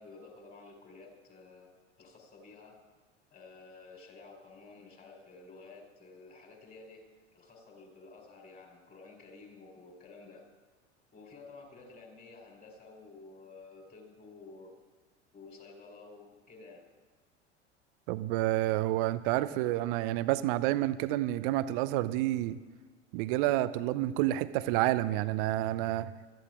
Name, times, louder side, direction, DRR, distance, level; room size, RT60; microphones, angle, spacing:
voice 1, 0.0-1.7 2.0-2.8 3.3-7.1 7.3-10.5 11.1-14.8 15.3-16.8, left 3 dB, 25° left, 1 dB, 4.2 m, -52 dB
voice 2, 18.1-22.6 23.1-26.1, right 15 dB, 50° right, 14 dB, 0.7 m, -29 dB
26.0 x 14.0 x 2.5 m, 1.4 s
figure-of-eight pair, 80°, 35 cm